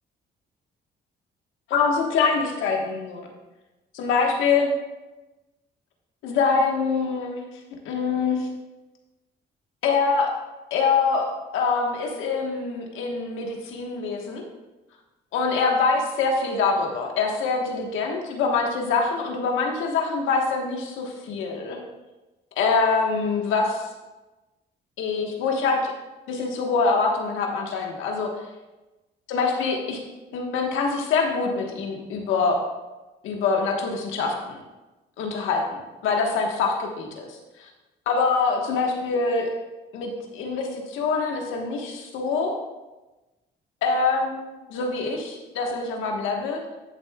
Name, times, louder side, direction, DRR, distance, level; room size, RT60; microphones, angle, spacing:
voice 1, 1.7-3.3 3.9-4.7 6.2-7.6 7.8-8.5 9.8-10.3 10.7-14.4 15.3-21.8 22.6-23.9 25.0-25.9 26.3-28.3 29.3-30.0 30.3-32.6 33.2-34.6 35.2-37.7 38.1-39.5 39.9-42.6 43.8-44.4 44.7-46.6, left 4 dB, 90° left, 1 dB, 1.4 m, -24 dB
11.5 x 7.0 x 2.4 m, 1.1 s
cardioid pair, 90°, 20 cm